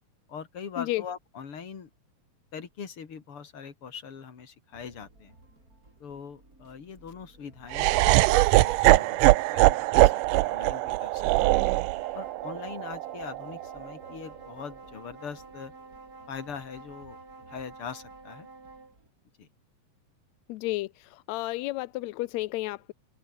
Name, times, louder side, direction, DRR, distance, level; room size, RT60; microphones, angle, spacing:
voice 1, 0.3-1.9 2.5-5.4 6.0-11.6 12.1-15.7 16.3-17.2 17.5-18.5 19.4-19.5, left 6 dB, 45° left, 3.3 m, -42 dB
sound 1, 4.7-19.1, right 2 dB, 25° right, 7.7 m, -59 dB
Laughter, 7.7-13.9, right 19 dB, 80° right, 2.2 m, -22 dB
sound 2, 11.6-19.0, right 4 dB, 40° right, 5.4 m, -49 dB
voice 2, 20.5-22.9, left 18 dB, 85° left, 1.6 m, -32 dB
open air
omnidirectional pair, 3.8 m